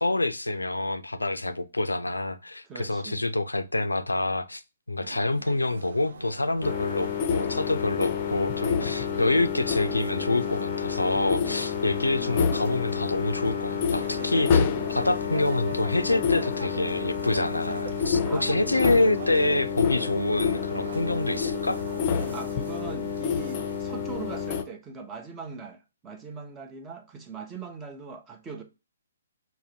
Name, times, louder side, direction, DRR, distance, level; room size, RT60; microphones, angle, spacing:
voice 1, 0.0-4.6 4.9-14.6 14.9-21.8, left 2 dB, 90° left, 0.4 m, -27 dB
voice 2, 2.6-3.3 18.2-18.9 22.3-28.6, right 4 dB, 15° right, 0.7 m, -41 dB
sound 1, 5.0-23.8, right 4 dB, 65° right, 0.5 m, -42 dB
sound 2, 6.6-24.6, left 6 dB, 35° left, 0.5 m, -28 dB
5.7 x 2.1 x 2.7 m
figure-of-eight pair, 130°, 0 cm